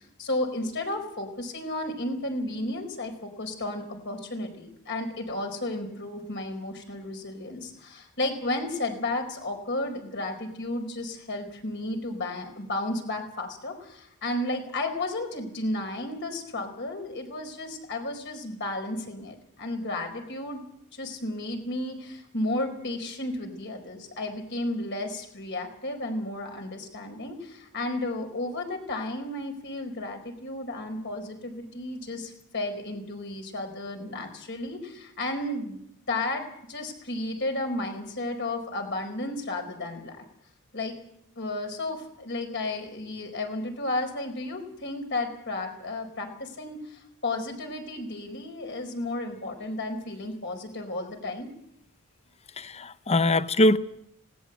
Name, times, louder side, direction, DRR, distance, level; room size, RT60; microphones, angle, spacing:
voice 1, 0.2-20.6 20.9-35.8 36.1-40.2 40.7-41.0 41.4-51.5, left 2 dB, 55° left, 4 dB, 4.6 m, -33 dB
voice 2, 52.6-53.8, left 1 dB, 30° left, 13 dB, 0.8 m, -22 dB
19.5 x 18.0 x 8.2 m, 0.75 s
head